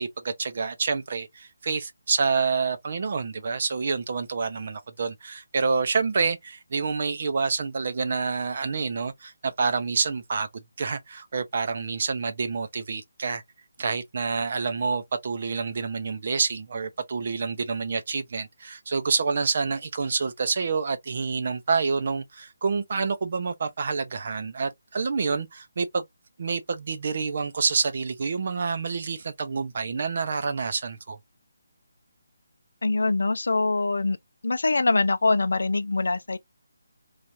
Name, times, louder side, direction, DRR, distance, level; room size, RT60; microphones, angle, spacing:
voice 1, 0.0-13.4 13.8-26.0 26.4-31.2, right 4 dB, 40° right, 0.5 m, -28 dB
voice 2, 32.8-34.2 34.4-36.4, left 3 dB, 80° left, 0.5 m, -23 dB
3.2 x 2.4 x 2.6 m
hypercardioid pair, 170°, 0 cm